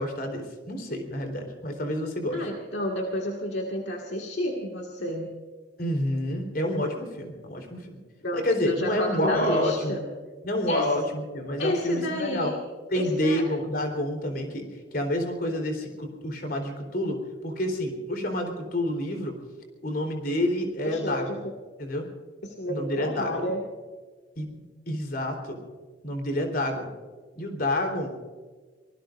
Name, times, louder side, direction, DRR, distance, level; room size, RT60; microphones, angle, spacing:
voice 1, 0.0-2.4 5.8-8.0 8.3-10.0 10.4-12.5 12.9-14.6 14.9-19.4 19.8-21.4 21.8-22.1 22.7-23.4 24.4-25.6 26.0-26.9 27.3-28.1, left 1 dB, 55° left, 4 dB, 3.9 m, -28 dB
voice 2, 2.3-5.3 8.2-10.0 10.7-10.9 11.6-12.6 12.9-13.4 20.8-21.4 22.4-23.6, left 1 dB, 70° left, 0 dB, 2.0 m, -30 dB
25.5 x 19.5 x 2.6 m, 1.5 s
head